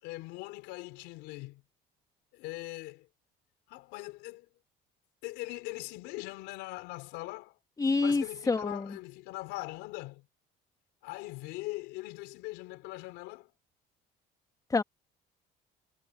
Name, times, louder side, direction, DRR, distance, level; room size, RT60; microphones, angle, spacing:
voice 1, 0.0-1.6 2.3-3.1 3.7-4.5 5.2-7.6 8.0-10.3 11.0-13.5, left 20 dB, 85° left, 4.3 m, -41 dB
voice 2, 7.8-9.0 14.7-14.8, left 3 dB, 20° left, 1.9 m, -27 dB
cardioid pair, 110°, 18 cm